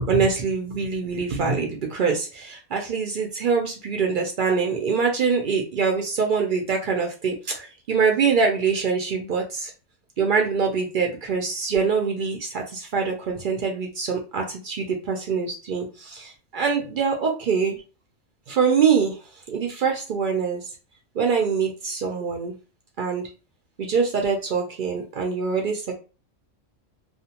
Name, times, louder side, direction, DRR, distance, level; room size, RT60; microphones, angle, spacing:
voice 1, 0.0-9.7 10.2-17.8 18.5-19.2 19.5-20.7 21.2-22.6 23.0-23.3 23.8-26.0, right 5 dB, 70° right, 2 dB, 0.4 m, -24 dB
2.4 x 2.2 x 2.8 m, 0.34 s
omnidirectional pair, 1.4 m